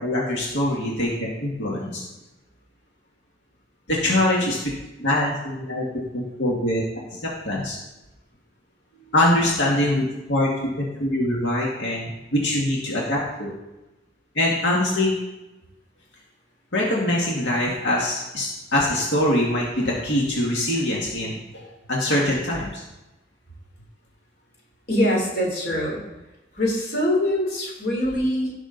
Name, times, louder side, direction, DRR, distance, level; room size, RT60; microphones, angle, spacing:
voice 1, 0.0-2.0 3.9-4.7 5.0-5.8 6.1-6.8 7.1-7.8 9.1-10.0 10.3-10.5 10.8-13.5 14.4-15.2 16.7-22.8, left 1 dB, 90° left, -3 dB, 1.9 m, -23 dB
voice 2, 24.9-26.0 26.6-28.5, left 1 dB, 55° left, -2 dB, 3.5 m, -23 dB
17.0 x 6.2 x 4.0 m, 1.0 s
head